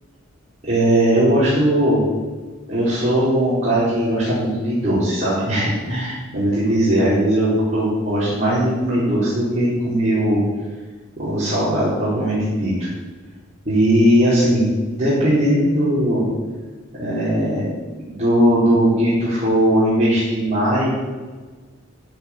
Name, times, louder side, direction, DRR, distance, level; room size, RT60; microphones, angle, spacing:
voice 1, 0.7-2.0 2.7-10.4 11.2-12.9 13.6-16.2 17.0-17.7 18.1-20.9, right 1 dB, 35° right, -11 dB, 4.4 m, -19 dB
13.5 x 6.2 x 8.0 m, 1.4 s
head